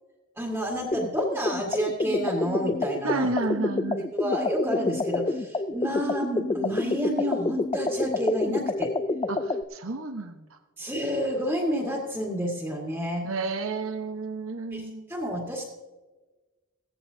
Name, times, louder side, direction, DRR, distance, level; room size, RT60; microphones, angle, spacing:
voice 1, 0.4-3.3 4.1-8.9 10.8-13.3 14.7-15.6, equal, 10° right, -1 dB, 1.9 m, -29 dB
sound 1, 0.9-9.6, left 2 dB, 20° left, 0.4 m, -28 dB
voice 2, 3.0-4.1 9.3-10.4 13.2-15.1, right 3 dB, 90° right, 6 dB, 1.2 m, -31 dB
17.0 x 15.0 x 2.8 m, 1.2 s
head